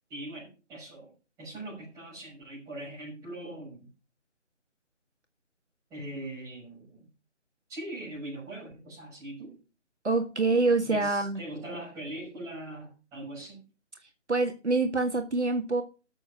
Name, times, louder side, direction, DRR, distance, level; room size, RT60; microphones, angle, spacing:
voice 1, 0.1-1.1 1.4-3.9 5.9-7.1 7.7-9.6 10.8-13.6, right 1 dB, 10° right, -7 dB, 6.0 m, -41 dB
voice 2, 10.0-11.4 14.3-15.8, right 3 dB, 65° right, 5 dB, 1.8 m, -26 dB
13.5 x 6.6 x 5.9 m, 0.33 s
figure-of-eight pair, 155°, 37 cm